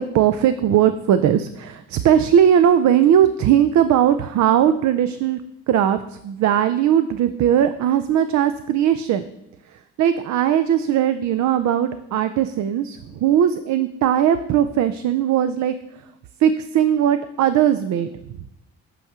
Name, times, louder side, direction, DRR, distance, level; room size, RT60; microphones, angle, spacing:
voice 1, 0.0-5.4 5.7-9.2 10.0-15.7 16.4-18.1, right 10 dB, 70° right, 11 dB, 0.5 m, -18 dB
8.3 x 5.7 x 3.6 m, 0.86 s
cardioid pair, 90°, 30 cm